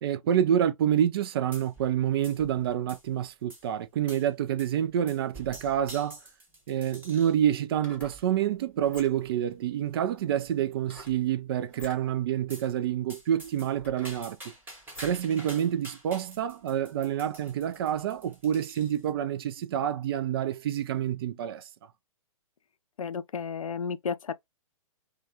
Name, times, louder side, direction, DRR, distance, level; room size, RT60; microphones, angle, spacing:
voice 1, 0.0-6.2 6.7-14.4 15.0-21.7, right 10 dB, 45° right, 0.4 m, -28 dB
sound 1, 1.5-2.0 2.2-3.1 3.5-3.7 4.1-4.3 4.6-4.8 5.1-7.4 8.0-8.4 9.0-9.1 9.4-9.5 9.8-9.9 10.4-10.8 12.5-12.7 13.1-19.1, right 1 dB, 10° right, 1.3 m, -48 dB
sound 2, 6.5-6.6 7.6-8.3 8.8-9.4 10.8-11.2 11.7-12.0 12.7-12.8 13.4-15.3 15.7-15.8, left 1 dB, 10° left, 1.3 m, -48 dB
voice 2, 23.0-24.3, left 6 dB, 80° left, 0.4 m, -32 dB
3.2 x 2.2 x 2.8 m
figure-of-eight pair, 120°, 17 cm